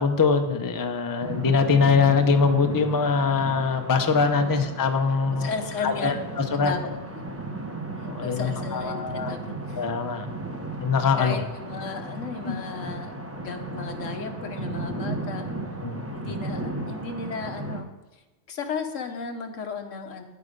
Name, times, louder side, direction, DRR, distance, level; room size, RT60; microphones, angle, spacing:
voice 1, 0.0-5.5 5.8-6.7 8.1-9.4 9.8-10.3 10.8-11.4 12.4-12.6 15.8-16.0, left 5 dB, 20° left, 6 dB, 0.6 m, -23 dB
sound 1, 1.2-17.8, right 2 dB, 15° right, 0.8 m, -35 dB
voice 2, 5.3-6.2 6.4-7.2 8.2-9.8 11.2-15.5 16.1-17.9 18.5-20.2, left 5 dB, 85° left, 5 dB, 1.4 m, -35 dB
9.7 x 8.1 x 5.2 m, 1.1 s
omnidirectional pair, 1.3 m